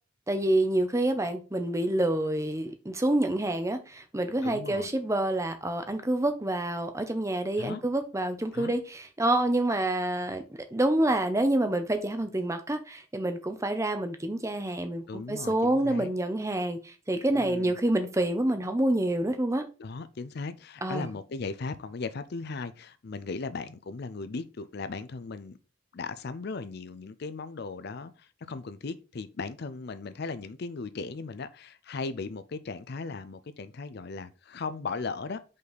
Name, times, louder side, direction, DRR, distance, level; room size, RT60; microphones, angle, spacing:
voice 1, 0.3-10.4 10.7-19.6 20.8-21.1, right 1 dB, 15° right, 0.7 m, -27 dB
voice 2, 4.4-4.9 7.6-7.8 8.5-8.7 15.1-16.1 17.3-17.7 19.8-25.6 25.9-35.4, left 4 dB, 50° left, 0.5 m, -37 dB
5.4 x 4.1 x 5.0 m
head